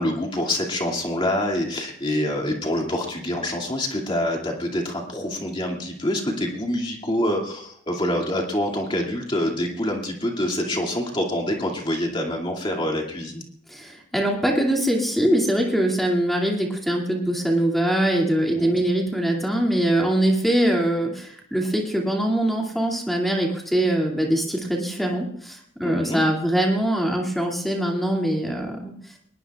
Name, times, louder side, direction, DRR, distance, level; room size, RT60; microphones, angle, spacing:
voice 1, 0.0-13.4 18.5-18.8 25.8-26.2, left 1 dB, 25° left, 1 dB, 2.4 m, -26 dB
voice 2, 13.7-28.9, right 1 dB, ahead, -1 dB, 2.4 m, -23 dB
22.0 x 20.0 x 2.4 m, 0.66 s
head